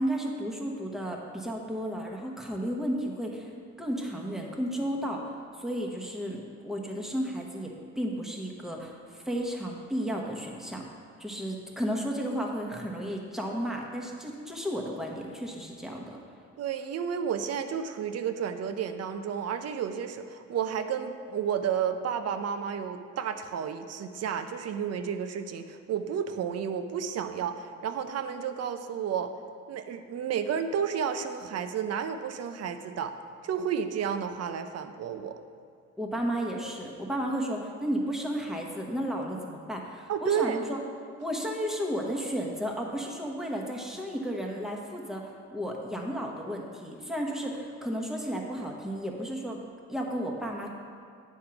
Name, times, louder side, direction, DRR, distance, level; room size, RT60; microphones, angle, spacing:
voice 1, 0.0-3.5 3.8-10.9 11.2-16.2 36.0-40.8 41.2-49.6 49.9-50.7, equal, ahead, -1 dB, 1.0 m, -33 dB
voice 2, 16.6-29.3 29.7-33.1 33.4-35.4 40.1-40.6, right 7 dB, 55° right, 8 dB, 0.6 m, -31 dB
8.9 x 3.7 x 5.8 m, 2.3 s
cardioid pair, 90°, 30 cm